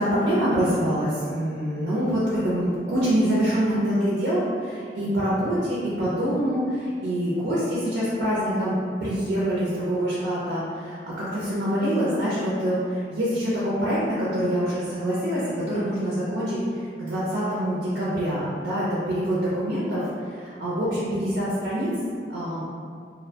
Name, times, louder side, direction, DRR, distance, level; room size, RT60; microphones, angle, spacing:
voice 1, 0.0-8.7 9.0-20.0 20.3-21.9 22.3-22.6, equal, 80° right, -9 dB, 0.6 m, -25 dB
2.5 x 2.1 x 2.7 m, 2.2 s
head